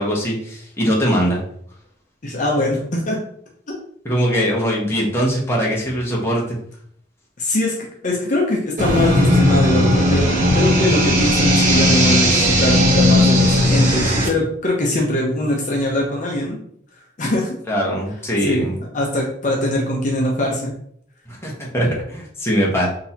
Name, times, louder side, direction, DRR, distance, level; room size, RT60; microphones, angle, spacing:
voice 1, 0.0-1.4 4.0-6.6 17.7-18.8 21.3-22.9, equal, 15° left, -3 dB, 1.0 m, -21 dB
voice 2, 2.2-3.2 7.4-16.6 17.2-17.5 18.4-18.7 18.9-20.7, left 1 dB, 40° left, -2 dB, 0.8 m, -22 dB
sound 1, 8.8-14.3, left 1 dB, 40° right, 1.1 m, -16 dB
6.1 x 2.8 x 2.9 m, 0.66 s
head